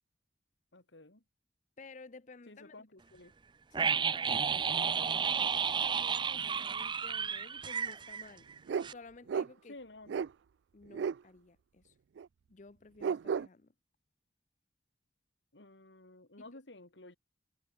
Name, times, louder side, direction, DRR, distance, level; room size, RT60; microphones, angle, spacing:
voice 1, 0.7-1.2 2.5-3.3 9.7-10.3 15.5-17.2, left 2 dB, 85° left, 3.0 m, -53 dB
voice 2, 1.8-2.7 3.7-8.5 8.8-9.7 10.1-10.2 10.7-12.0 12.5-13.7 16.4-16.5, left 3 dB, 45° left, 0.6 m, -54 dB
sound 1, 3.7-8.6 8.8-8.9, right 6 dB, 25° right, 0.5 m, -32 dB
sound 2, 8.7-8.9 9.3-9.5 10.1-10.3 10.9-11.2 12.2-12.3 13.0-13.5, right 6 dB, 85° right, 0.4 m, -33 dB
head